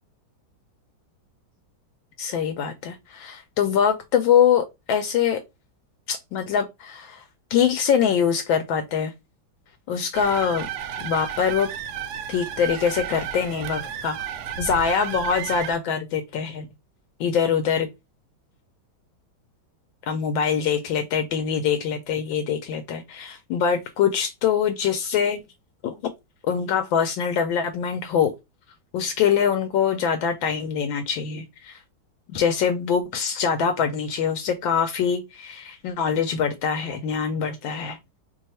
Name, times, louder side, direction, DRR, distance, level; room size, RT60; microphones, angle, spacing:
voice 1, 2.2-5.4 6.1-7.2 7.5-9.1 9.9-10.7 11.0-11.7 12.3-14.2 14.6-16.7 17.2-17.9 20.1-25.4 25.8-25.9 26.4-28.3 28.9-31.8 32.3-38.0, left 7 dB, 75° left, 1.3 m, -23 dB
sound 1, 10.1-15.8, right 9 dB, 75° right, 0.9 m, -33 dB
3.2 x 2.3 x 4.1 m
omnidirectional pair, 2.2 m